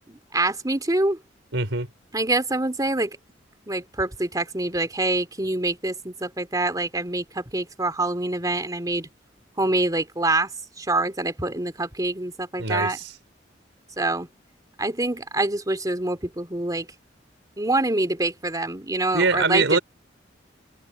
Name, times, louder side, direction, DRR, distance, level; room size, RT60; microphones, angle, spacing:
voice 1, 0.1-1.2 2.1-3.1 3.7-9.1 9.6-10.5 10.8-13.0 14.0-14.3 14.8-16.9 17.6-19.8, right 2 dB, 20° right, 2.9 m, -25 dB
voice 2, 1.5-1.9 12.6-13.1 19.1-19.8, right 3 dB, 80° right, 4.5 m, -23 dB
head